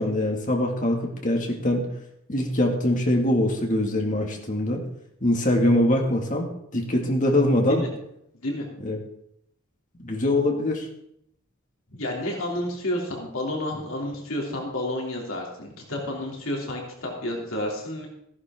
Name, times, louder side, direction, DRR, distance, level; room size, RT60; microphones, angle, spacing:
voice 1, 0.0-1.9 2.3-4.8 5.2-7.8 8.8-9.0 10.0-10.9, left 1 dB, 35° left, 1 dB, 2.1 m, -23 dB
voice 2, 11.9-18.1, left 1 dB, 70° left, -1 dB, 3.0 m, -30 dB
15.0 x 11.0 x 3.7 m, 0.75 s
head